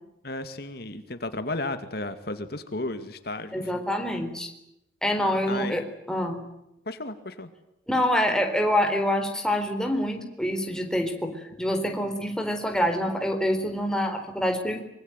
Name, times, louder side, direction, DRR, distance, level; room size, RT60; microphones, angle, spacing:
voice 1, 0.2-3.7 5.5-5.8 6.9-7.5, left 2 dB, 60° left, 9 dB, 2.3 m, -33 dB
voice 2, 3.5-4.5 5.0-6.4 7.9-11.3 11.6-14.8, equal, 5° left, 4 dB, 4.0 m, -26 dB
25.0 x 23.5 x 9.2 m, 0.86 s
head